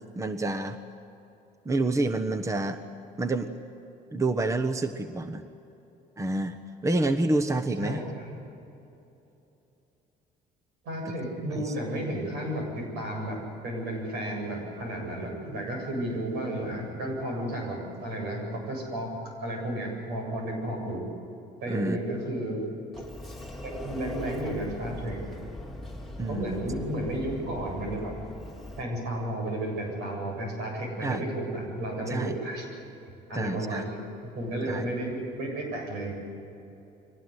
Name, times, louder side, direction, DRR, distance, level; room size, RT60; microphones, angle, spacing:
voice 1, 0.2-0.8 1.6-2.8 3.2-3.5 4.1-5.4 6.2-8.0 11.6-11.7 21.7-22.0 26.2-26.5 31.0-31.2 32.1-32.4 33.3-33.9 34.7-34.9, right 2 dB, 20° right, 8 dB, 1.1 m, -28 dB
voice 2, 7.8-8.3 10.8-13.4 13.6-19.1 19.4-21.0 21.6-22.6 23.6-25.2 26.3-28.2 28.8-32.7 33.3-34.0 34.2-36.1, right 1 dB, 85° right, 2 dB, 8.0 m, -32 dB
Sliding door, 22.9-28.8, left 1 dB, ahead, 2.9 m, -40 dB
23.5 x 18.5 x 9.8 m, 2.9 s
cardioid pair, 110°, 17 cm